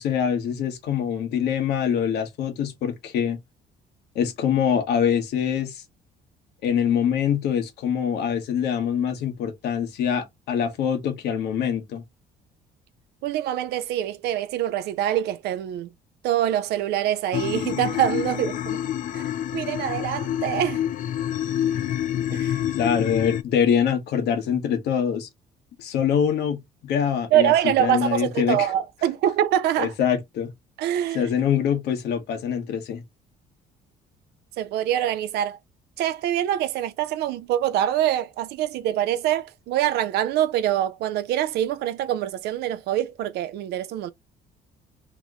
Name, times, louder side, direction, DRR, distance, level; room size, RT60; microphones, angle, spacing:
voice 1, 0.0-3.4 4.1-5.8 6.6-12.0 22.8-25.3 25.8-27.5 27.8-28.7 29.8-30.5 31.1-33.0, left 8 dB, 75° left, 1.0 m, -24 dB
voice 2, 13.2-15.9 16.2-18.8 19.1-19.3 19.5-20.8 22.3-22.6 27.3-29.9 30.8-31.3 34.6-35.6 36.0-44.1, right 11 dB, 80° right, 0.5 m, -24 dB
sound 1, 17.3-23.4, left 10 dB, 50° left, 0.4 m, -27 dB
2.9 x 2.1 x 3.6 m
cardioid pair, 110°, 17 cm